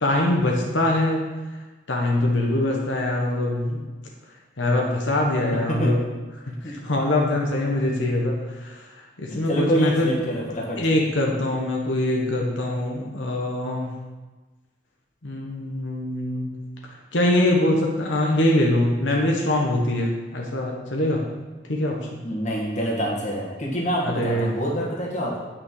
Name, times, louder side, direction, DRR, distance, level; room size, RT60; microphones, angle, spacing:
voice 1, 0.0-1.2 1.9-3.8 4.6-6.0 6.6-8.8 9.2-10.1 10.8-13.9 15.2-16.5 17.1-21.2 21.7-22.0 24.0-24.5, left 1 dB, 80° left, -1 dB, 1.2 m, -23 dB
voice 2, 5.5-5.9 6.6-6.7 9.3-10.8 22.2-25.4, equal, 40° left, -3 dB, 1.8 m, -26 dB
9.3 x 6.0 x 4.8 m, 1.3 s
head